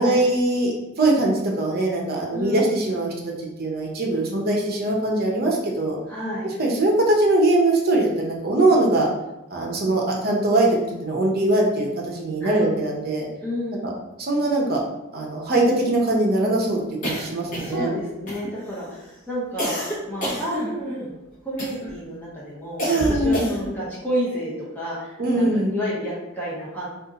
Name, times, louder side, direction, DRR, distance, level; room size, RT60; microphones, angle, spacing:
voice 1, 0.0-3.1 3.4-6.0 6.6-9.1 9.5-13.3 13.8-13.9 14.2-14.8 15.1-17.9 22.9-23.5 25.2-25.7, right 2 dB, 50° right, -1 dB, 0.6 m, -21 dB
voice 2, 2.3-2.8 6.1-6.5 12.4-12.7 13.4-13.9 17.6-19.8 20.1-21.1 21.4-26.9, equal, 10° left, -8 dB, 0.6 m, -30 dB
sound 1, 17.0-17.9 18.3-18.8 19.6-21.1 21.6-22.0 22.8-23.8, equal, 40° left, 0.9 m, -29 dB
2.5 x 2.4 x 3.8 m, 0.98 s
head